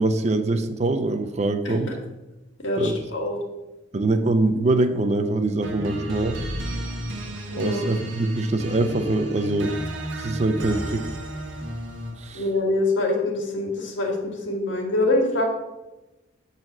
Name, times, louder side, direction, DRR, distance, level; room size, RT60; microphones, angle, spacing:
voice 1, 0.0-1.9 2.8-3.0 3.9-6.4 7.6-9.7 10.1-11.0 12.2-12.4, right 2 dB, 35° right, 9 dB, 0.5 m, -23 dB
voice 2, 2.6-3.4 7.5-7.9 12.3-15.4, left 2 dB, 80° left, 0 dB, 1.9 m, -24 dB
sound 1, 5.6-12.3, right 1 dB, 80° right, 1.3 m, -33 dB
7.6 x 4.1 x 6.0 m, 1.0 s
head